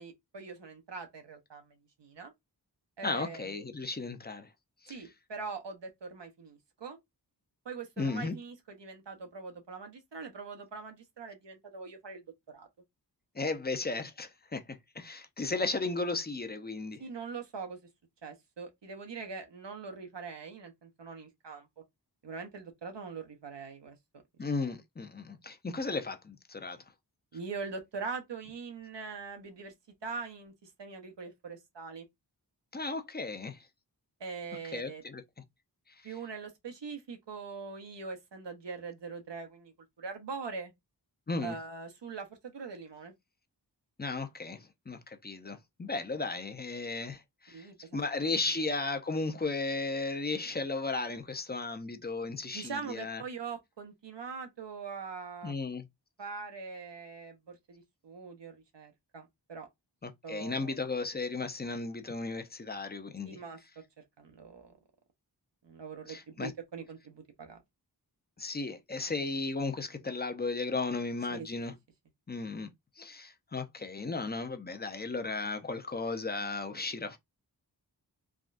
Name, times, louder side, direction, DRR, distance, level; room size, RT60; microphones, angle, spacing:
voice 1, 0.0-2.3 3.0-3.6 4.9-7.0 7.6-12.7 17.0-17.8 18.2-21.7 22.2-24.0 24.4-24.7 27.3-29.7 30.0-32.0 34.2-35.0 36.0-40.7 41.4-43.1 47.5-48.0 48.6-48.7 52.5-55.5 56.2-59.7 60.2-60.8 63.2-63.6 64.2-64.7 65.6-67.6 71.3-71.5, right 5 dB, 85° right, 0.9 m, -42 dB
voice 2, 3.0-4.5 4.8-4.9 8.0-8.4 13.3-17.0 24.4-26.8 32.7-33.6 34.7-35.2 41.3-41.6 44.0-47.7 47.9-53.2 55.4-55.9 60.0-63.4 66.1-66.5 68.4-71.7 72.3-72.7 73.0-77.2, left 3 dB, 25° left, 0.5 m, -35 dB
3.5 x 2.2 x 2.5 m
wide cardioid pair, 60°, 42 cm